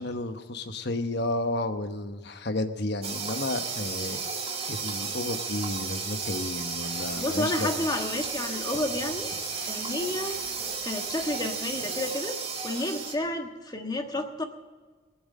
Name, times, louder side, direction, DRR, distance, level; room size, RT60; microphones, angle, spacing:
voice 1, 0.0-4.2 4.7-7.7, left 2 dB, 60° left, 8 dB, 1.1 m, -32 dB
sound 1, 3.0-13.1, right 5 dB, 30° right, 2.0 m, -33 dB
sound 2, 6.6-12.0, left 3 dB, 40° left, 2.7 m, -47 dB
voice 2, 7.2-9.3 9.6-10.4 10.8-14.4, left 1 dB, 20° left, 4 dB, 1.4 m, -31 dB
21.0 x 7.9 x 6.5 m, 1.4 s
head